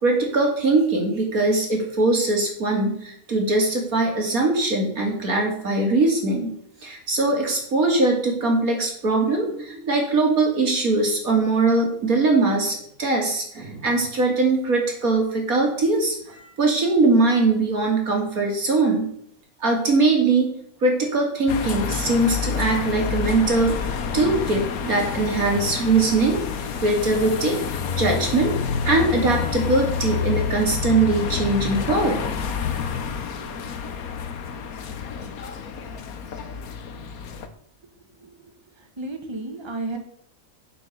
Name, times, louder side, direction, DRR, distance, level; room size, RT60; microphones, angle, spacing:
voice 1, 0.0-6.5 6.8-19.1 19.6-20.5 20.8-26.4 26.8-27.6 28.0-28.5 28.8-32.2, right 3 dB, 85° right, 1 dB, 3.2 m, -21 dB
sound 1, 21.5-37.5, left 6 dB, 90° left, 1.5 m, -28 dB
voice 2, 38.2-40.0, right 2 dB, 20° right, 6 dB, 1.3 m, -34 dB
9.3 x 7.0 x 6.7 m, 0.68 s
omnidirectional pair, 1.5 m